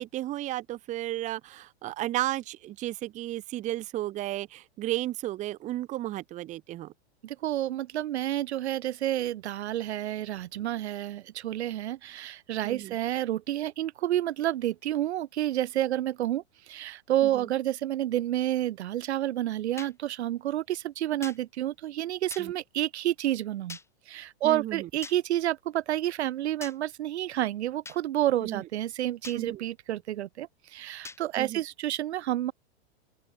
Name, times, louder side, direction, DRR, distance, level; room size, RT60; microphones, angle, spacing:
voice 1, 0.0-6.9 12.6-12.9 22.4-22.5 24.4-24.9 28.4-28.6 29.3-29.6 31.4-31.6, right 15 dB, 20° right, 0.8 m, -33 dB
voice 2, 7.2-23.8 24.1-32.5, right 13 dB, 80° right, 1.3 m, -29 dB
sound 1, 19.8-19.9 21.2-21.4 22.3-22.5 23.7-23.9 25.0-25.2 26.6-26.8 27.9-28.0 29.2-29.4 31.1-31.2, left 3 dB, 10° left, 4.1 m, -42 dB
open air
supercardioid pair, 145°, 33 cm